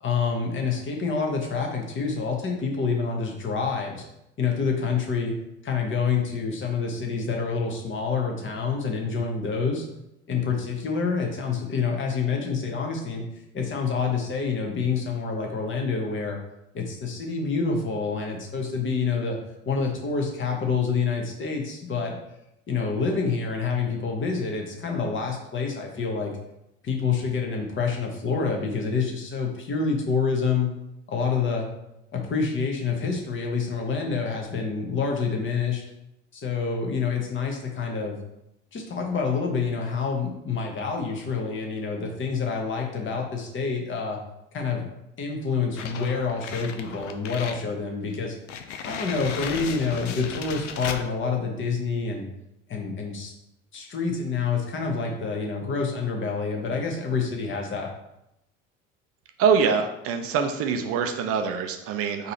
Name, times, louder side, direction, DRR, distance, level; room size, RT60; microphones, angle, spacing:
voice 1, 0.0-4.0 4.4-5.3 5.6-9.8 10.3-13.2 13.5-16.4 16.7-19.4 19.6-22.2 22.7-26.3 26.8-30.7 31.1-31.7 32.1-35.8 36.3-38.2 38.7-44.2 44.5-44.9 45.2-48.3 48.8-52.3 52.7-53.3 53.7-57.9, left 5 dB, 30° left, 1 dB, 1.1 m, -27 dB
sound 1, 45.8-47.6 48.0-48.1 48.5-51.1, left 7 dB, 70° left, 0.5 m, -36 dB
voice 2, 59.4-62.3, right 6 dB, 40° right, 5 dB, 0.6 m, -24 dB
4.0 x 2.8 x 4.3 m, 0.84 s
figure-of-eight pair, 65°, 38 cm